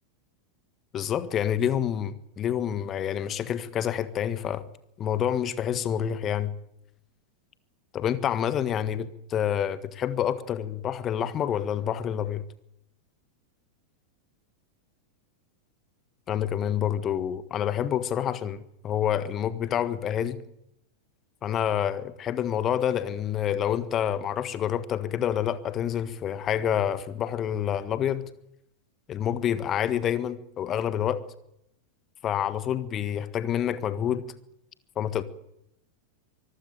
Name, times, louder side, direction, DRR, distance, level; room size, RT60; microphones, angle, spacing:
voice 1, 0.9-4.6 5.0-6.5 7.9-12.4 16.3-20.4 21.4-28.2 29.1-31.2 32.2-34.3 34.9-35.2, left 9 dB, 30° left, 1.5 m, -28 dB
24.0 x 15.0 x 9.0 m
figure-of-eight pair, 90°, 0 cm